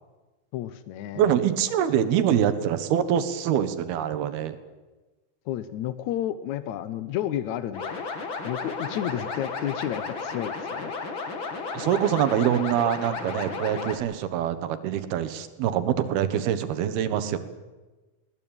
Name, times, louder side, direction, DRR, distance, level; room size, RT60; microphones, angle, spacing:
voice 1, 0.5-1.3 5.5-8.0 8.4-10.9, left 11 dB, 75° left, 14 dB, 1.7 m, -31 dB
voice 2, 1.2-4.6 11.7-17.4, right 9 dB, 85° right, 12 dB, 3.3 m, -24 dB
sound 1, 7.7-14.0, left 4 dB, 35° left, 2.6 m, -33 dB
22.0 x 19.0 x 8.9 m, 1.2 s
omnidirectional pair, 4.4 m